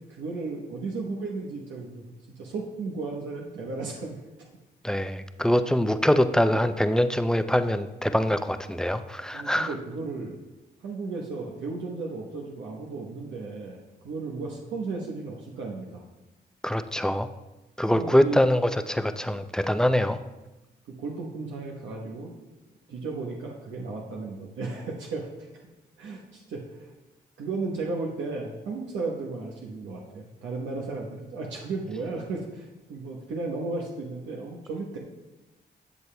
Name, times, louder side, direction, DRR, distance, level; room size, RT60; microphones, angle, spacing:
voice 1, 0.1-2.1 2.4-4.2 9.3-10.4 10.8-16.0 17.9-18.4 21.0-22.3 22.9-25.3 26.0-26.9 27.4-35.0, right 3 dB, 80° right, -1 dB, 1.0 m, -34 dB
voice 2, 4.8-9.7 16.6-17.3 17.8-20.2, equal, 5° left, 10 dB, 0.4 m, -24 dB
12.0 x 6.8 x 2.2 m, 1.1 s
cardioid pair, 70°, 19 cm